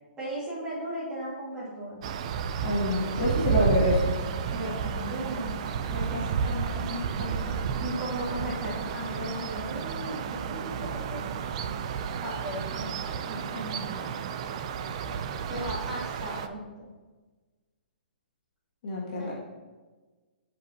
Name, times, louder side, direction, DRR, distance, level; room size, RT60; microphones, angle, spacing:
voice 1, 0.2-2.0 4.5-5.6 5.9-11.2 12.2-14.1 15.5-16.9 19.2-19.3, equal, 10° right, -8 dB, 1.7 m, -36 dB
sound 1, 2.0-16.5, right 6 dB, 35° right, 0.3 m, -31 dB
voice 2, 2.6-4.1 18.8-19.3, left 1 dB, 40° left, -4 dB, 1.8 m, -26 dB
7.7 x 5.2 x 2.7 m, 1.3 s
hypercardioid pair, 165°, 6 cm